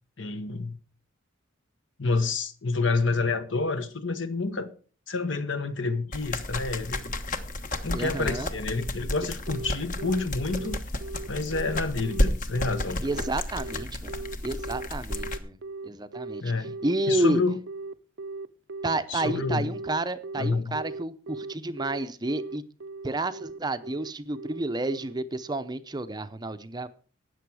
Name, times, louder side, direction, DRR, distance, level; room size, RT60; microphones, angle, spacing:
voice 1, 0.2-0.8 2.0-4.7 5.1-7.1 7.8-10.8 11.3-13.0 16.4-16.8 17.1-17.6 19.1-19.7 20.4-20.8, left 3 dB, 65° left, 1.2 m, -28 dB
sound 1, 6.1-15.4, left 1 dB, 40° left, 1.2 m, -32 dB
voice 2, 7.9-8.5 13.0-14.1 14.4-15.6 15.8-16.5 16.8-17.4 18.8-22.6 23.0-26.9, right 2 dB, 20° right, 0.6 m, -30 dB
Telephone, 9.5-25.6, right 3 dB, 60° right, 0.6 m, -38 dB
13.0 x 9.2 x 4.8 m
head